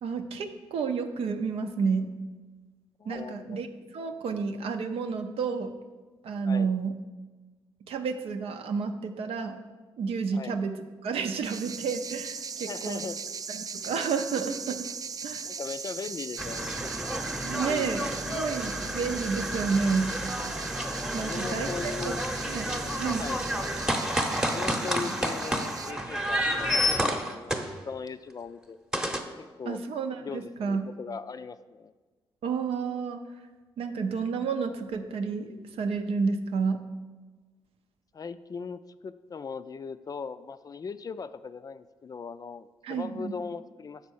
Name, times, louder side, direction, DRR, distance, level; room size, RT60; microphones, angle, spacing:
voice 1, 0.0-2.1 3.1-3.7 3.9-5.7 6.2-7.0 7.9-9.6 10.0-13.0 13.5-14.9 15.2-15.5 17.4-20.1 21.1-22.1 22.5-23.3 29.7-30.9 32.4-33.3 33.8-36.8 42.8-43.3, right 5 dB, 75° right, 7 dB, 0.6 m, -30 dB
voice 2, 3.0-3.7 6.5-6.7 10.3-10.6 12.7-13.2 15.4-16.8 17.6-18.1 21.2-22.3 22.6-23.4 24.5-28.8 29.4-29.8 30.2-31.9 38.1-44.0, left 5 dB, 40° left, 13 dB, 0.3 m, -39 dB
sound 1, 11.4-25.9, right 5 dB, 40° right, 0.3 m, -39 dB
sound 2, 16.4-28.1 28.9-29.2, equal, 5° right, 0.9 m, -30 dB
6.6 x 4.1 x 6.3 m, 1.3 s
cardioid pair, 60°, 10 cm